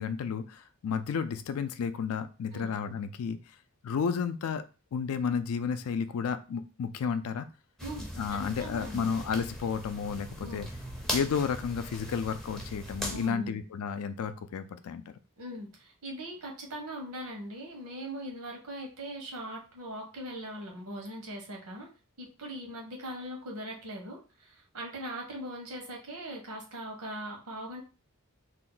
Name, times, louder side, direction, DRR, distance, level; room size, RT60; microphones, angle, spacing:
voice 1, 0.0-3.4 3.8-4.6 4.9-7.5 8.2-10.7 11.1-15.0, left 6 dB, 75° left, 11 dB, 0.3 m, -32 dB
sound 1, 7.8-13.3, equal, ahead, 0.4 m, -39 dB
voice 2, 7.8-9.1 10.4-10.7 13.1-13.6 15.4-21.9 22.2-27.8, right 1 dB, 85° right, 0 dB, 1.0 m, -40 dB
2.7 x 2.1 x 3.8 m, 0.33 s
head